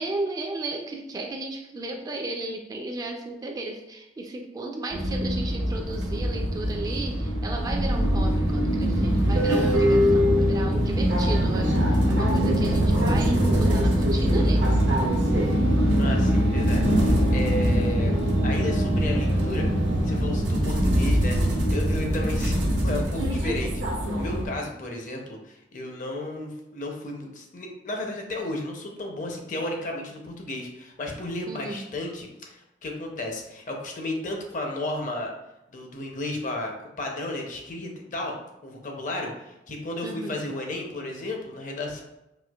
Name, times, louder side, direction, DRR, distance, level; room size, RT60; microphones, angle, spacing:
voice 1, 0.0-14.6 31.5-31.9 40.0-40.5, right 2 dB, 20° right, 2 dB, 0.3 m, -34 dB
sound 1, 4.9-24.5, equal, 85° right, 0.8 m, -22 dB
voice 2, 15.9-18.1 18.4-19.7 20.0-35.3 35.7-38.4 38.6-42.0, left 2 dB, 45° left, 1 dB, 0.6 m, -33 dB
4.2 x 2.4 x 2.3 m, 0.91 s
head